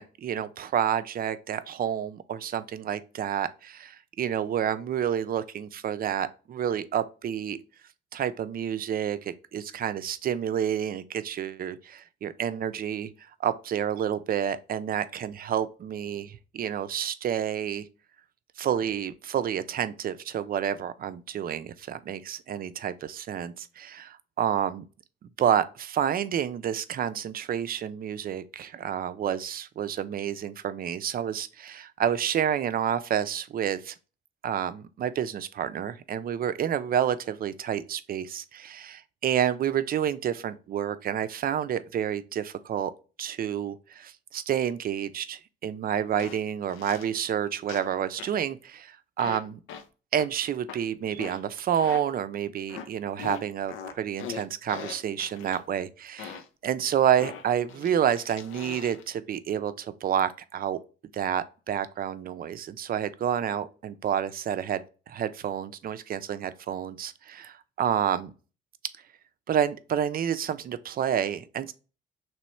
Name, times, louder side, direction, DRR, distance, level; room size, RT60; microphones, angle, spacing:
voice 1, 0.0-7.6 8.1-13.1 13.4-17.9 18.6-24.9 25.4-33.9 34.4-42.9 43.2-49.6 50.1-60.8 61.1-68.3 69.5-71.7, right 9 dB, 50° right, 0.4 m, -29 dB
sound 1, 46.2-46.4 46.7-47.1 47.7-47.9 48.2-48.4 49.2-49.4 49.7-49.8 50.2-50.3 50.7-50.8 51.2-51.4 51.7-52.0 52.7-52.9 53.2-55.6 56.2-56.5 57.2-59.0, left 7 dB, 85° left, 0.5 m, -40 dB
3.1 x 3.1 x 4.3 m
cardioid pair, 90°, 20 cm